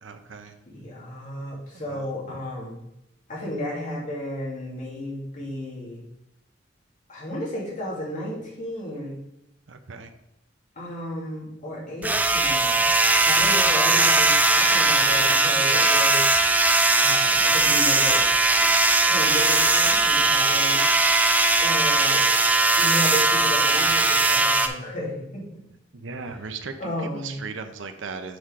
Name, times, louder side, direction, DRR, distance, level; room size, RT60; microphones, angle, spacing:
voice 1, 0.0-0.5 1.7-2.1 9.7-10.1 25.9-28.4, right 4 dB, 90° right, 8 dB, 0.7 m, -37 dB
voice 2, 0.7-2.8 3.3-6.0 7.1-9.2 10.8-12.8 13.2-16.2 17.0-18.2 18.5-18.7 19.1-20.8 21.6-22.2 22.7-25.6 26.8-27.4, equal, 45° left, -5 dB, 2.2 m, -33 dB
sound 1, 12.0-24.7, right 2 dB, 10° right, 0.3 m, -19 dB
8.0 x 4.8 x 3.7 m, 0.84 s
head